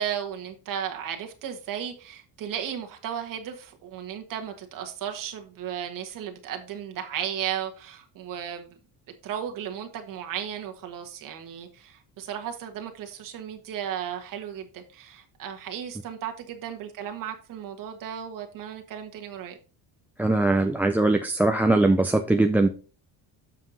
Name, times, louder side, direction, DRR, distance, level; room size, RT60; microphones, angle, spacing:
voice 1, 0.0-8.7 9.2-19.6, right 9 dB, 55° right, 1.5 m, -35 dB
voice 2, 20.2-22.7, right 2 dB, 5° right, 0.3 m, -21 dB
7.4 x 5.6 x 3.9 m
cardioid pair, 130°, 39 cm